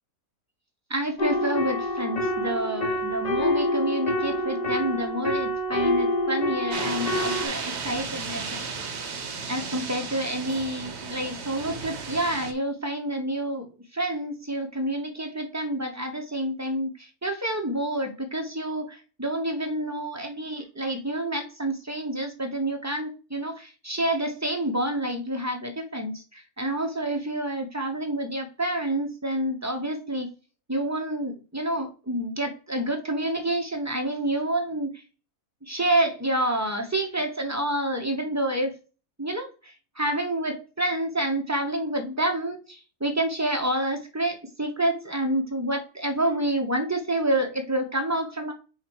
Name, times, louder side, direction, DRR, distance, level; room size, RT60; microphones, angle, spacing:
voice 1, 0.9-8.5 9.5-30.3 30.7-35.0 35.6-38.7 39.2-48.5, right 1 dB, 15° right, 4 dB, 0.8 m, -28 dB
sound 1, 1.2-7.5, left 1 dB, 30° left, 1.0 m, -26 dB
sound 2, 6.7-12.5, right 5 dB, 50° right, 1.1 m, -34 dB
4.8 x 4.5 x 4.4 m, 0.35 s
omnidirectional pair, 1.6 m